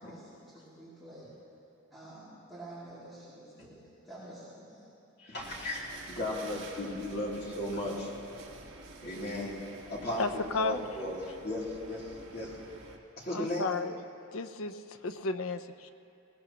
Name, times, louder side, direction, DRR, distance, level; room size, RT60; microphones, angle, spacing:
voice 1, 0.0-1.3 1.9-4.9 6.4-6.6, right 1 dB, ahead, -13 dB, 2.9 m, -49 dB
voice 2, 5.2-5.8 6.1-8.1 9.0-9.5 9.9-11.1 11.4-12.6 13.2-13.7, left 1 dB, 50° left, -5 dB, 3.1 m, -35 dB
sound 1, 5.4-13.0, right 2 dB, 65° right, 1.7 m, -49 dB
voice 3, 10.2-10.8 13.3-13.9 14.3-15.9, left 3 dB, 90° left, 9 dB, 0.7 m, -33 dB
19.5 x 19.0 x 3.0 m, 2.7 s
head